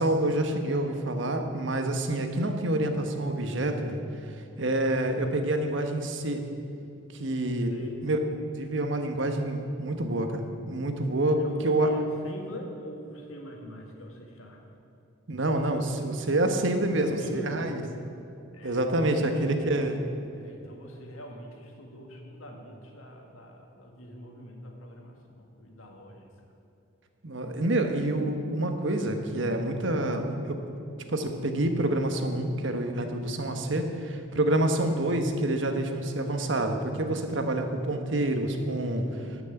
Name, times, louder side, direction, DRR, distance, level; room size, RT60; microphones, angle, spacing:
voice 1, 0.0-4.0 4.6-6.4 7.1-7.7 8.0-8.2 8.6-11.9 15.3-17.8 18.6-20.0 27.2-30.6 31.1-39.0, right 1 dB, 65° right, 5 dB, 1.2 m, -27 dB
voice 2, 7.7-8.0 11.4-14.8 16.9-18.1 18.5-19.5 20.3-26.5 39.0-39.4, equal, 90° left, 2 dB, 2.0 m, -44 dB
13.0 x 6.2 x 8.9 m, 2.8 s
head